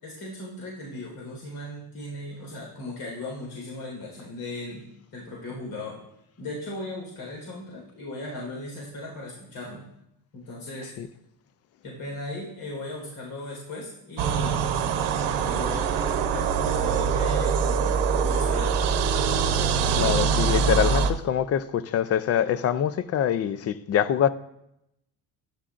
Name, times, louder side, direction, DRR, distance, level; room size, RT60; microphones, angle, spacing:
voice 1, 0.0-4.8 5.1-6.0 6.4-9.8 10.3-10.9 11.8-14.7 15.4-18.7, left 2 dB, 75° left, 4.2 m, -37 dB
sound 1, 14.2-21.1, right 6 dB, 75° right, 0.9 m, -23 dB
voice 2, 19.9-24.3, left 9 dB, 40° left, 0.4 m, -24 dB
15.0 x 11.0 x 2.5 m
cardioid pair, 155°, 40 cm